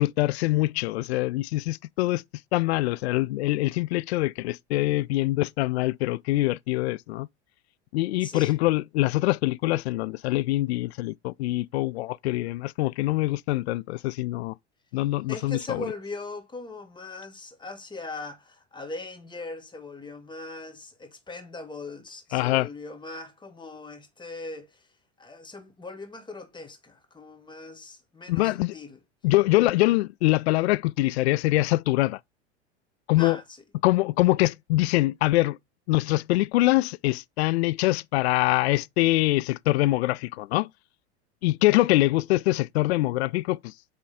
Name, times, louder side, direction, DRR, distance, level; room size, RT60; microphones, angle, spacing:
voice 1, 0.0-2.2 2.5-7.3 7.9-14.5 14.9-15.8 22.3-22.7 28.3-28.7 29.2-32.2 33.1-33.4 33.8-35.6 35.9-40.7 41.4-44.0, left 18 dB, 65° left, 0.5 m, -24 dB
voice 2, 8.2-8.6 15.3-24.9 25.2-29.0 33.2-33.6, left 3 dB, 15° left, 1.8 m, -40 dB
7.9 x 3.7 x 3.5 m
hypercardioid pair, 85°, 34 cm